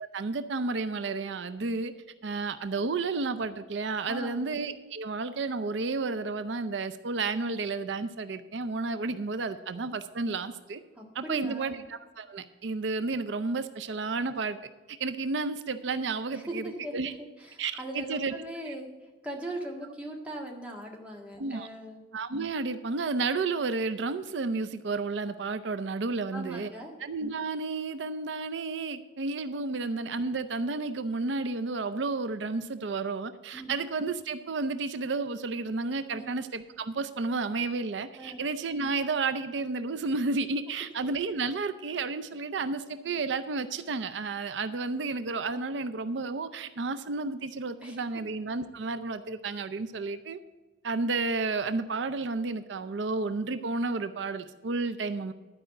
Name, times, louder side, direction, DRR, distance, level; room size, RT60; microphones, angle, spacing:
voice 1, 0.0-1.9 2.2-10.8 11.2-14.6 14.9-16.6 16.9-17.1 17.6-18.3 18.7-18.8 21.4-21.7 22.1-26.7 27.0-50.4 50.8-55.3, right 3 dB, 80° right, 12 dB, 0.5 m, -31 dB
voice 2, 4.0-4.4 11.0-11.8 16.3-22.0 26.3-26.9 33.5-33.7 36.1-36.2 38.2-38.4 47.8-48.0, right 1 dB, 5° right, -1 dB, 1.7 m, -40 dB
11.5 x 4.9 x 7.7 m, 1.2 s
head